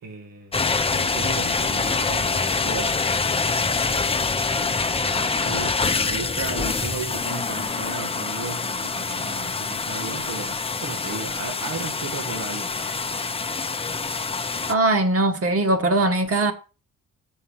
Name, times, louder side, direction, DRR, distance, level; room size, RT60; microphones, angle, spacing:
voice 1, 0.0-3.1 3.4-3.7 4.5-12.7, right 4 dB, 90° right, 2.0 m, -35 dB
sound 1, 0.5-14.7, left 4 dB, 20° left, 0.6 m, -25 dB
voice 2, 14.7-16.5, right 2 dB, 45° right, 1.6 m, -20 dB
7.0 x 6.7 x 7.2 m
cardioid pair, 130°, 32 cm